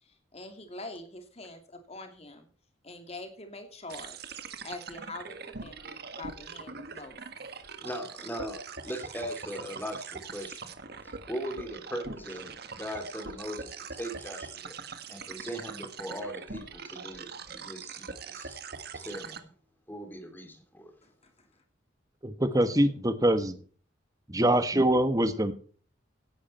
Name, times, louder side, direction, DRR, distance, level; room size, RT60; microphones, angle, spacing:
voice 1, 0.0-2.5 2.8-4.4 4.6-7.2 21.0-21.5, left 2 dB, 35° left, 6 dB, 3.0 m, -44 dB
sound 1, 3.9-19.4, right 5 dB, 55° right, 1.5 m, -42 dB
voice 2, 7.8-10.7 11.0-14.8 15.1-18.6 18.9-19.5 19.9-20.9, equal, 10° left, 6 dB, 2.7 m, -39 dB
voice 3, 22.2-23.6 24.3-25.5, right 1 dB, 20° right, 10 dB, 1.4 m, -24 dB
17.0 x 11.0 x 4.4 m, 0.43 s
head